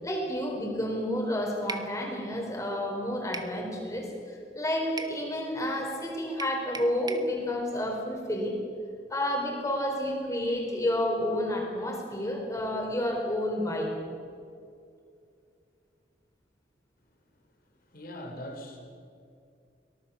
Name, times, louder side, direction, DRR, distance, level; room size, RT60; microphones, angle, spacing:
voice 1, 0.0-8.6 9.1-13.9, left 1 dB, 20° left, 1 dB, 4.4 m, -30 dB
sound 1, 1.7-1.9 3.3-3.6 5.0-5.2 6.4-7.3, right 3 dB, 25° right, 1.2 m, -38 dB
voice 2, 17.6-18.8, equal, 55° left, 3 dB, 3.9 m, -42 dB
24.0 x 18.5 x 7.2 m, 2.4 s
head